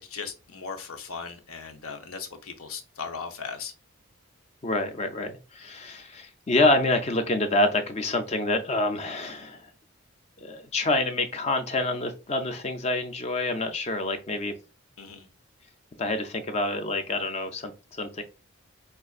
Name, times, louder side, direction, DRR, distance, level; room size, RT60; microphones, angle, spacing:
voice 1, 0.0-3.7 15.0-15.3, left 5 dB, 80° left, 0.7 m, -38 dB
voice 2, 4.6-9.6 10.4-14.5 16.0-18.2, left 2 dB, 30° left, 0.4 m, -27 dB
5.3 x 2.5 x 2.3 m
head